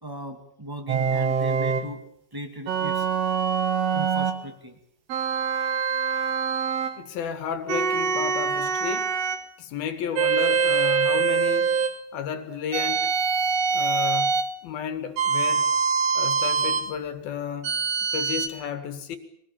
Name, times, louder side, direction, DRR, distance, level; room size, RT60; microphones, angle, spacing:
voice 1, 0.0-2.0 2.3-3.1 3.9-4.8, right 1 dB, 20° right, 0.6 m, -37 dB
sound 1, 0.9-1.9 2.7-4.4 5.1-7.0 7.7-9.4 10.1-12.0 12.7-14.5 15.2-16.9 17.6-18.5, right 5 dB, 70° right, 1.5 m, -24 dB
voice 2, 7.0-9.1 9.6-11.8 12.1-13.1 13.7-14.4 14.6-15.7 16.1-17.7 18.0-19.2, left 8 dB, 65° left, 3.2 m, -32 dB
24.0 x 19.0 x 8.8 m
omnidirectional pair, 5.0 m